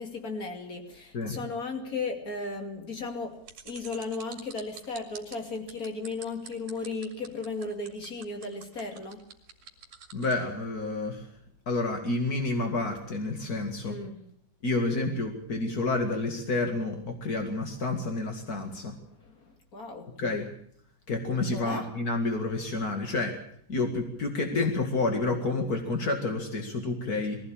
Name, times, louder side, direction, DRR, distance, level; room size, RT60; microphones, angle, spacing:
voice 1, 0.0-9.3 13.9-14.2 19.2-20.2 21.5-21.9, left 3 dB, 30° left, 1.8 m, -36 dB
sound 1, 3.5-10.4, right 9 dB, 50° right, 3.0 m, -47 dB
voice 2, 10.1-11.3 11.6-14.0 14.6-18.9 20.2-20.5 21.1-23.4 23.7-27.4, left 2 dB, 45° left, 1.2 m, -29 dB
22.0 x 15.5 x 8.7 m
omnidirectional pair, 5.2 m